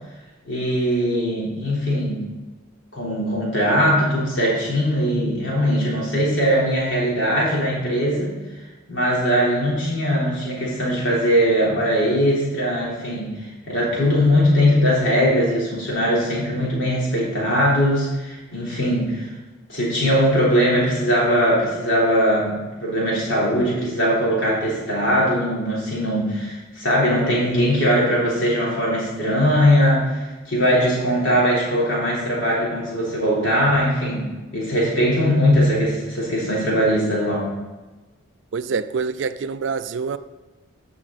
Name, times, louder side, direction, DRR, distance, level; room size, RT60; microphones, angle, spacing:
voice 1, 0.4-2.2 2.9-8.3 8.9-19.3 19.7-34.2 34.5-37.5, equal, 60° left, -5 dB, 3.7 m, -20 dB
voice 2, 38.5-40.2, right 5 dB, 60° right, 13 dB, 0.4 m, -26 dB
13.5 x 6.4 x 4.1 m, 1.2 s
head